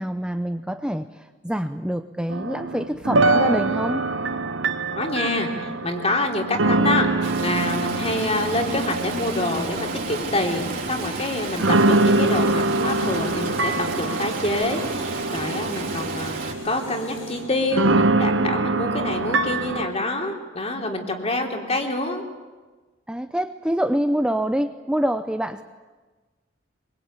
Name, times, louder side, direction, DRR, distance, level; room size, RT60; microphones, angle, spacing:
voice 1, 0.0-4.0 23.1-25.6, equal, 5° right, 8 dB, 0.7 m, -26 dB
sound 1, 2.3-11.1 11.6-19.9, right 2 dB, 70° right, 1.1 m, -24 dB
voice 2, 4.9-22.2, left 2 dB, 35° left, 3 dB, 3.3 m, -26 dB
Stream, 7.2-16.5, right 3 dB, 50° right, 3.7 m, -32 dB
sound 2, 8.8-17.4, left 4 dB, 90° left, 7.3 m, -50 dB
24.0 x 22.5 x 8.9 m, 1.3 s
head